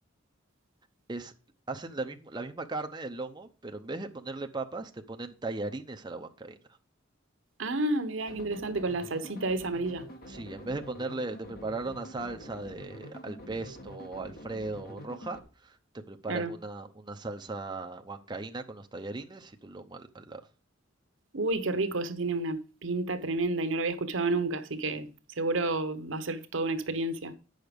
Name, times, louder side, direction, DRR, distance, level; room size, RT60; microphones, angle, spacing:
voice 1, 1.7-6.6 10.3-20.4, right 3 dB, 20° right, 0.7 m, -38 dB
voice 2, 7.6-10.0 16.3-16.5 21.3-25.1 25.4-27.3, right 2 dB, 75° right, 0.9 m, -30 dB
sound 1, 8.3-15.4, equal, 50° left, 1.6 m, -46 dB
8.9 x 6.4 x 5.1 m
head